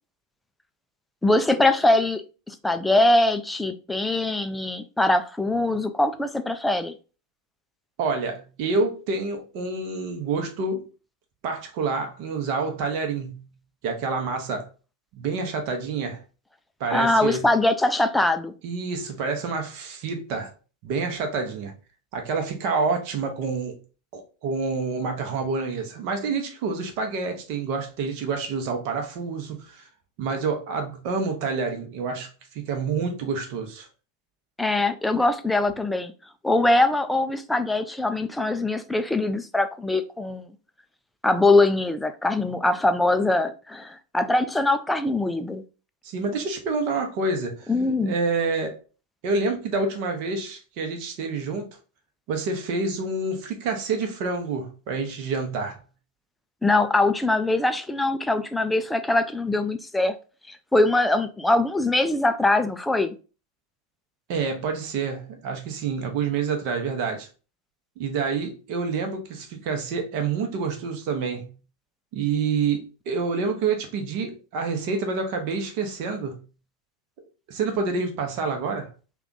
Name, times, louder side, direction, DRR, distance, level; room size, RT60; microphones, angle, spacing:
voice 1, 1.2-6.9 16.9-18.5 34.6-36.1 36.4-40.5 41.2-45.6 47.7-48.2 56.6-60.1 60.5-63.2, left 2 dB, 5° left, 0.3 m, -22 dB
voice 2, 8.0-10.9 11.4-13.4 13.8-14.7 15.1-16.2 16.8-17.4 18.6-20.5 20.8-21.7 22.1-23.7 24.1-29.9 30.2-33.9 46.0-47.7 48.0-48.8 49.2-51.7 52.3-55.8 64.3-67.3 68.0-71.5 72.1-76.4 77.5-78.9, right 4 dB, 45° right, 0.8 m, -28 dB
3.4 x 2.3 x 3.7 m
figure-of-eight pair, 90°, 0 cm